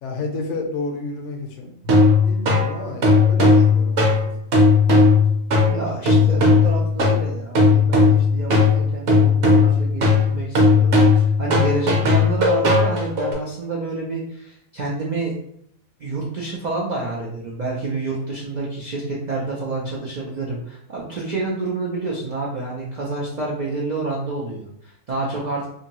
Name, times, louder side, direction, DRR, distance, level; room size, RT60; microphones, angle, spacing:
voice 1, 0.0-1.7 2.2-4.1, left 3 dB, 65° left, 3 dB, 0.9 m, -30 dB
sound 1, 1.9-13.3, left 3 dB, 60° right, 1.0 m, -16 dB
voice 2, 5.6-15.3 16.0-25.7, right 3 dB, 80° right, -4 dB, 0.4 m, -28 dB
2.7 x 2.6 x 2.9 m, 0.72 s
omnidirectional pair, 1.4 m